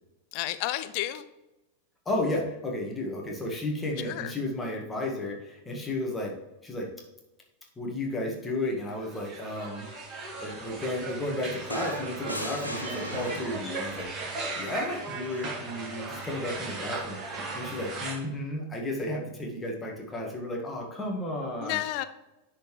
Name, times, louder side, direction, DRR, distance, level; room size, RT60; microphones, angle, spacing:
voice 1, 0.3-1.2 4.0-4.3 21.6-22.0, left 15 dB, 45° left, 12 dB, 0.5 m, -31 dB
voice 2, 2.1-6.3 6.6-6.9 7.8-14.1 14.6-21.8, left 1 dB, 15° left, -1 dB, 1.8 m, -33 dB
sound 1, 8.9-18.1, right 3 dB, 25° right, 2.1 m, -37 dB
sound 2, 11.7-13.8 15.2-15.5, right 1 dB, 90° right, 1.0 m, -37 dB
10.0 x 4.4 x 3.2 m, 0.99 s
figure-of-eight pair, 90°, 0 cm